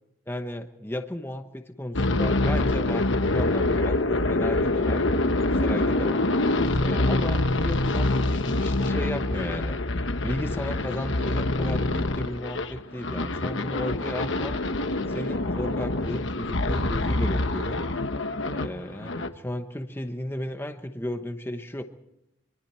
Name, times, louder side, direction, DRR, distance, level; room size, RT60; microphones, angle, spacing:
voice 1, 0.3-3.0 3.3-5.0 5.4-6.2 6.8-9.8 10.2-14.6 15.1-17.8 18.4-21.8, left 1 dB, 10° left, 7 dB, 1.0 m, -34 dB
sound 1, 1.9-18.7 19.0-19.3, left 2 dB, 65° left, 1.2 m, -25 dB
24.5 x 24.0 x 4.4 m, 0.86 s
head